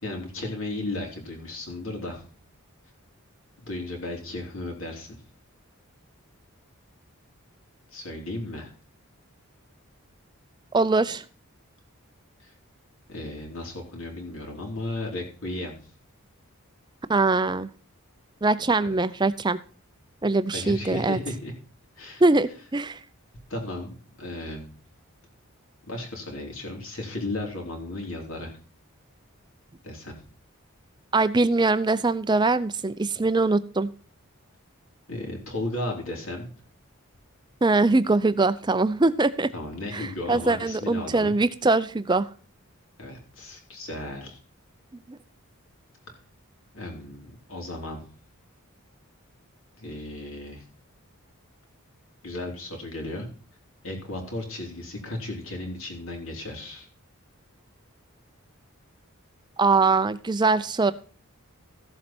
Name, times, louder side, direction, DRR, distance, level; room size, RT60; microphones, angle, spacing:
voice 1, 0.0-2.2 3.6-5.2 7.9-8.7 12.4-12.5 13.1-15.8 18.8-18.9 20.5-21.5 22.0-22.2 23.5-24.7 25.9-28.5 29.8-30.2 35.1-36.5 39.5-41.3 43.0-44.4 46.7-48.0 49.8-50.6 52.2-53.3 53.8-56.8, left 2 dB, 65° left, 1 dB, 3.3 m, -35 dB
voice 2, 10.7-11.2 17.1-17.7 18.4-19.6 20.2-21.2 22.2-23.0 31.1-33.9 37.6-39.5 39.9-42.3 45.1-45.2 59.6-60.9, right 3 dB, 20° right, 14 dB, 0.5 m, -22 dB
15.0 x 7.5 x 4.3 m, 0.41 s
head